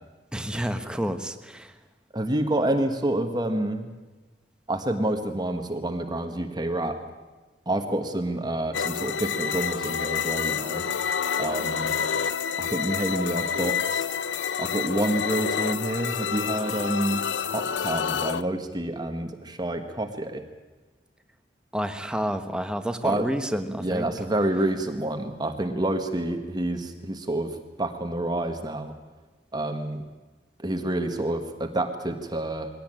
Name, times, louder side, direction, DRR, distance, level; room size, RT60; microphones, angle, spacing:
voice 1, 0.3-1.7 21.7-24.1, equal, 5° right, 8 dB, 1.3 m, -29 dB
voice 2, 2.1-3.9 4.7-7.0 7.6-10.8 11.4-11.9 12.6-14.1 14.6-17.2 17.5-20.4 23.0-23.3 23.7-28.9 29.5-30.0 30.6-32.7, right 1 dB, 25° right, 6 dB, 1.5 m, -28 dB
sound 1, 8.7-18.4, left 7 dB, 85° left, 0.6 m, -28 dB
21.5 x 17.5 x 9.0 m, 1.2 s
head